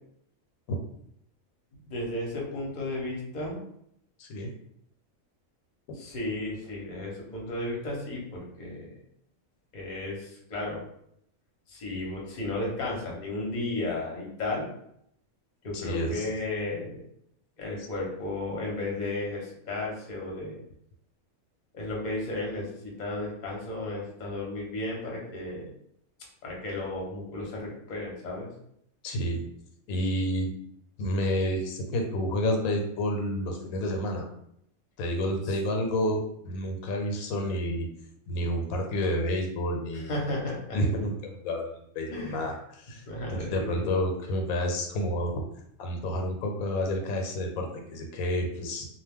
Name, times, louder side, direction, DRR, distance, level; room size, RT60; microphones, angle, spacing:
voice 1, 1.9-3.6 5.9-9.0 9.7-10.8 11.7-14.7 15.6-17.0 17.6-20.6 21.7-25.7 26.4-28.5 35.5-35.6 40.1-40.8 42.1-42.5 43.1-43.9, left 2 dB, 40° left, -2 dB, 0.7 m, -34 dB
voice 2, 15.7-16.3 29.0-29.4 29.9-30.5 31.0-34.3 35.0-37.9 38.3-40.1 40.7-41.1 41.4-43.0 43.3-45.4 45.8-48.9, equal, 85° left, 3 dB, 1.0 m, -29 dB
2.3 x 2.1 x 3.4 m, 0.72 s
omnidirectional pair, 1.4 m